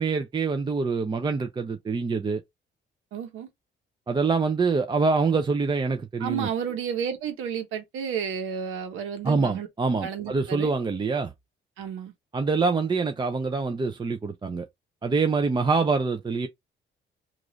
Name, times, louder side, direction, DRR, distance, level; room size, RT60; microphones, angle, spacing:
voice 1, 0.0-2.4 4.1-6.5 9.2-11.3 12.3-14.7 15.0-16.5, right 4 dB, 25° right, 0.5 m, -25 dB
voice 2, 3.1-3.5 6.2-9.7 10.0-10.7 11.8-12.1, right 8 dB, 90° right, 1.0 m, -31 dB
3.0 x 2.5 x 3.8 m
cardioid pair, 90°, 20 cm